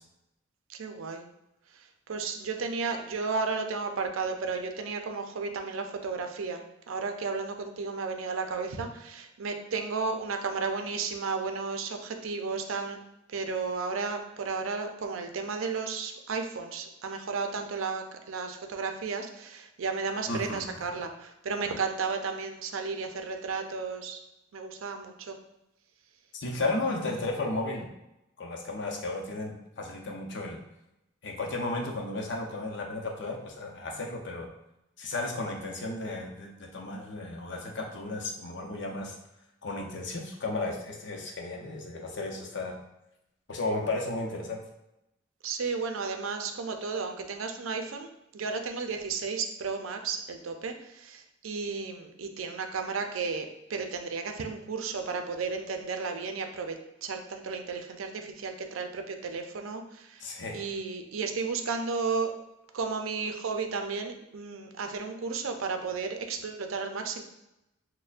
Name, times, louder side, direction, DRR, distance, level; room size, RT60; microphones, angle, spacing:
voice 1, 0.7-1.2 2.1-13.0 13.3-24.2 24.5-25.4 45.4-60.3 60.5-62.4 62.7-67.2, right 4 dB, 90° right, 5 dB, 0.5 m, -33 dB
voice 2, 20.3-20.6 26.3-27.9 28.4-30.6 31.2-34.5 35.0-39.2 39.6-42.8 43.5-44.6 60.2-60.7, left 2 dB, 60° left, 1 dB, 0.7 m, -34 dB
6.3 x 2.1 x 2.4 m, 0.90 s
head